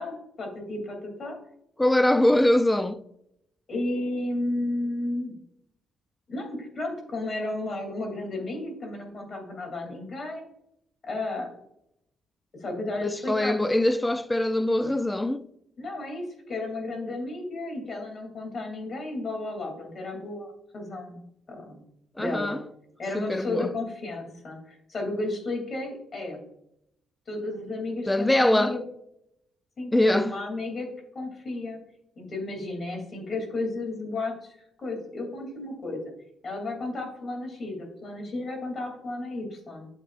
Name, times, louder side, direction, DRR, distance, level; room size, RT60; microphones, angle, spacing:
voice 1, 0.0-1.4 3.7-5.3 6.3-10.5 11.0-11.5 12.6-13.6 15.8-21.2 21.5-21.8 22.2-22.6 23.0-26.4 27.3-28.8 29.8-30.9 31.1-31.8 32.2-36.0 36.4-39.9, left 2 dB, 45° left, 2.6 m, -33 dB
voice 2, 1.8-3.0 13.0-15.5 22.2-22.6 23.1-23.7 28.1-28.8 29.9-30.3, left 1 dB, 10° left, 0.4 m, -23 dB
9.0 x 7.3 x 2.4 m
cardioid pair, 110°, 0 cm